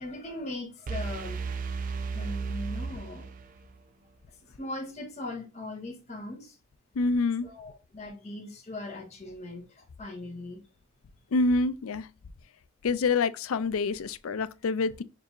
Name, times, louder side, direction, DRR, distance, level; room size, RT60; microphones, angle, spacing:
voice 1, 0.0-1.4 2.1-3.3 4.3-6.6 7.4-10.6, left 2 dB, 30° left, 1.5 m, -40 dB
sound 1, 0.9-3.8, right 5 dB, 40° right, 0.3 m, -34 dB
voice 2, 7.0-7.5 11.3-12.1 12.8-15.0, left 3 dB, 80° left, 0.4 m, -26 dB
6.6 x 2.9 x 2.5 m
head